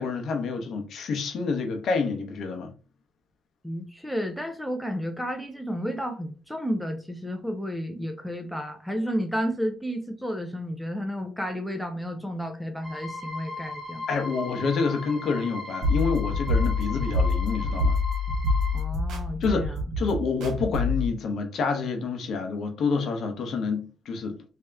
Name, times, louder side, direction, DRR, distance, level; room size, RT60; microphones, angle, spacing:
voice 1, 0.0-2.7 14.1-18.0 19.4-24.4, left 4 dB, 50° left, 0.8 m, -28 dB
voice 2, 3.6-14.0 18.7-19.8, equal, ahead, 0.4 m, -32 dB
sound 1, 12.8-18.8, left 3 dB, 15° right, 1.5 m, -37 dB
sound 2, 15.8-21.1, left 3 dB, 85° right, 1.6 m, -26 dB
3.3 x 2.8 x 3.4 m
cardioid pair, 165°, 0 cm